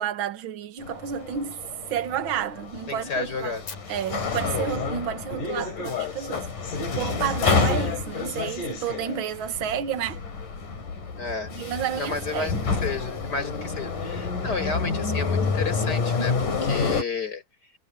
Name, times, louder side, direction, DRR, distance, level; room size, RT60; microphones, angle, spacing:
voice 1, 0.0-1.6 1.9-3.6 3.9-6.5 6.9-10.2 11.6-12.6 14.5-14.6, right 9 dB, 45° right, 1.9 m, -30 dB
sound 1, 0.8-17.0, left 4 dB, 85° left, 6.0 m, -29 dB
voice 2, 2.9-3.6 11.2-11.5 11.9-17.4, left 4 dB, 30° left, 5.8 m, -32 dB
Fire, 3.7-5.7, left 6 dB, 65° left, 5.6 m, -46 dB
omnidirectional pair, 3.6 m